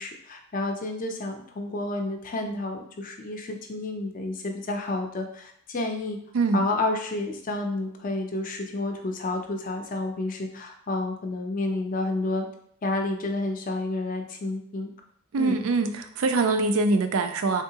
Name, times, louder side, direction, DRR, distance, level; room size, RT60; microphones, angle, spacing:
voice 1, 0.0-6.2 6.5-12.5 12.8-14.9 15.4-15.6, left 2 dB, 40° left, 4 dB, 0.4 m, -30 dB
voice 2, 15.3-17.6, right 3 dB, 75° right, 7 dB, 0.4 m, -23 dB
3.6 x 2.7 x 2.8 m, 0.64 s
head